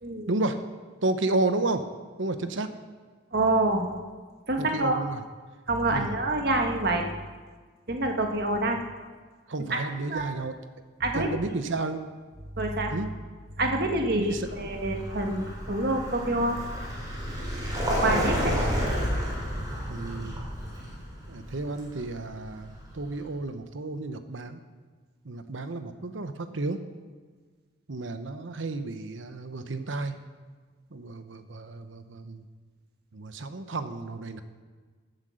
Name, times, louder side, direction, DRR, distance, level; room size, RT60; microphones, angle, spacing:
voice 1, 0.3-0.7 1.0-1.9 2.2-2.7 4.6-5.2 5.9-6.2 9.5-10.6 11.1-12.0 12.9-13.1 14.2-14.5 18.2-18.8 19.9-20.5 21.3-24.6 25.2-26.9 27.9-30.2 30.9-32.5 33.1-34.4, right 2 dB, 75° right, 9 dB, 1.0 m, -32 dB
voice 2, 3.3-3.8 4.5-5.0 5.7-7.1 7.9-8.8 9.7-9.8 10.1-10.3 11.0-11.3 12.5-12.9 13.6-16.6 17.9-18.5, right 2 dB, 50° right, 3 dB, 1.5 m, -26 dB
Vehicle, 14.3-23.1, equal, 20° right, 3.7 m, -31 dB
15.5 x 8.2 x 6.4 m, 1.5 s
head